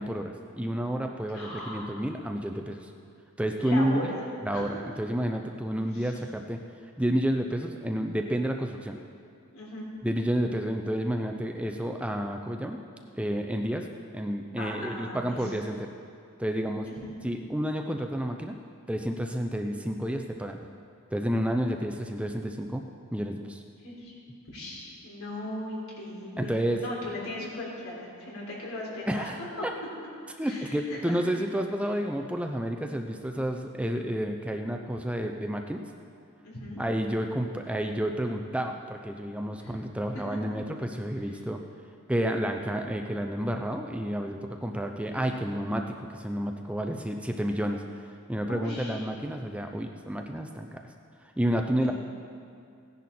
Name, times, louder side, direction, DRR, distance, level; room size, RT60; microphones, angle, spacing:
voice 1, 0.0-2.9 3.4-4.1 4.4-6.6 7.0-9.0 10.0-12.8 13.2-13.9 14.1-15.9 16.4-16.9 17.2-18.6 18.9-20.6 21.1-22.8 23.1-23.6 26.4-26.8 29.1-29.7 30.4-35.8 36.8-41.6 42.1-47.8 48.3-50.8 51.4-51.9, equal, 5° right, 4 dB, 0.5 m, -30 dB
voice 2, 1.3-1.9 3.6-4.2 4.5-4.7 5.9-6.1 9.5-9.9 14.6-15.5 16.9-17.1 23.8-24.1 24.5-29.3 29.6-29.7 30.4-31.2 36.4-36.8 39.6-39.8 40.1-40.2 42.2-42.5 48.5-49.0 51.8-51.9, left 1 dB, 75° left, -3 dB, 3.5 m, -38 dB
16.5 x 10.5 x 4.3 m, 2.4 s
head